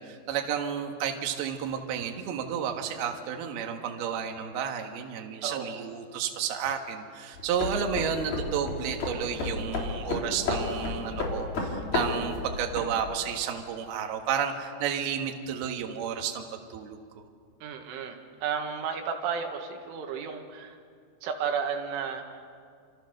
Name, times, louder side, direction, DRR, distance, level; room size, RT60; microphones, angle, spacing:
voice 1, 0.0-16.4 16.7-17.0, right 8 dB, 65° right, 3 dB, 3.3 m, -32 dB
voice 2, 5.4-5.9 17.6-20.8 21.2-22.4, right 6 dB, 85° right, 3 dB, 4.3 m, -33 dB
sound 1, 7.3-13.0, left 3 dB, 55° left, 5.2 m, -32 dB
29.0 x 26.0 x 6.7 m, 2.2 s
omnidirectional pair, 5.4 m